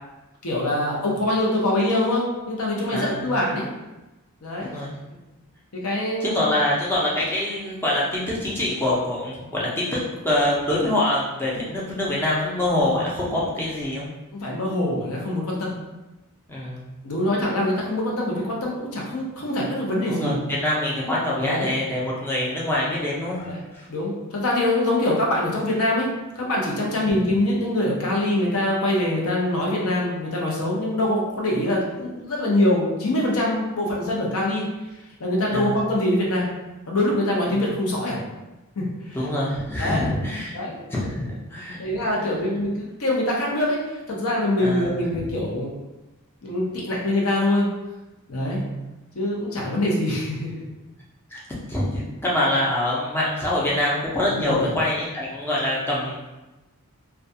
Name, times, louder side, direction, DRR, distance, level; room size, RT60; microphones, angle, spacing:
voice 1, 0.4-3.7 4.4-4.7 5.7-6.5 14.3-15.7 17.0-20.4 21.4-21.7 23.4-23.6 23.9-26.1 26.3-34.7 35.2-36.5 36.9-38.2 38.8-39.2 39.8-40.0 40.5-40.8 41.8-43.8 44.1-45.7 46.4-47.7 48.3-48.6 49.1-50.6 54.3-54.7, left 1 dB, 70° left, -3 dB, 0.7 m, -24 dB
voice 2, 2.9-3.3 4.6-4.9 6.2-10.0 10.2-14.1 16.5-17.0 20.1-23.9 26.9-27.2 35.5-35.8 37.5-37.7 39.1-40.5 40.9-41.8 42.1-42.4 44.6-45.3 48.4-48.8 51.3-51.4 51.7-56.3, left 1 dB, 10° left, -6 dB, 0.5 m, -25 dB
2.3 x 2.2 x 2.6 m, 1.1 s
head